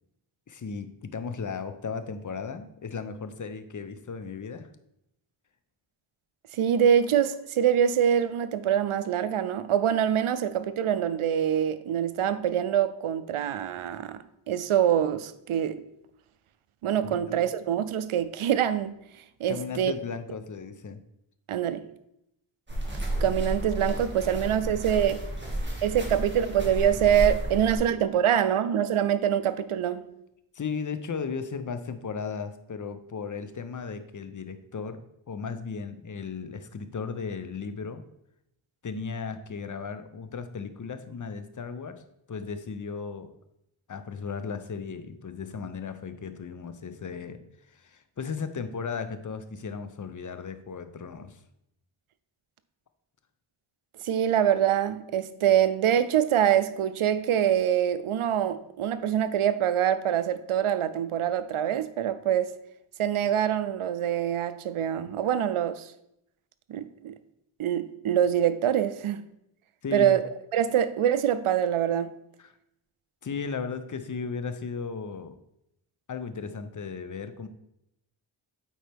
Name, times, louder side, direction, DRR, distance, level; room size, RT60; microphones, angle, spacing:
voice 1, 0.5-4.7 17.0-17.4 19.5-21.0 30.5-38.0 38.8-42.0 42.3-43.3 43.9-47.4 47.7-51.4 69.8-70.2 72.4-72.5 73.2-75.4 76.1-77.5, left 5 dB, 40° left, 0.7 m, -36 dB
voice 2, 6.5-14.2 14.5-15.8 16.8-18.9 19.4-19.9 21.5-21.8 23.2-25.2 25.8-30.1 54.0-62.5 63.0-65.9 66.7-67.1 67.6-69.2 69.9-70.2 70.5-72.1, right 9 dB, 80° right, 0.6 m, -25 dB
sound 1, 22.7-27.8, right 1 dB, 20° right, 2.0 m, -32 dB
8.7 x 4.5 x 3.4 m
wide cardioid pair, 70°, 50 cm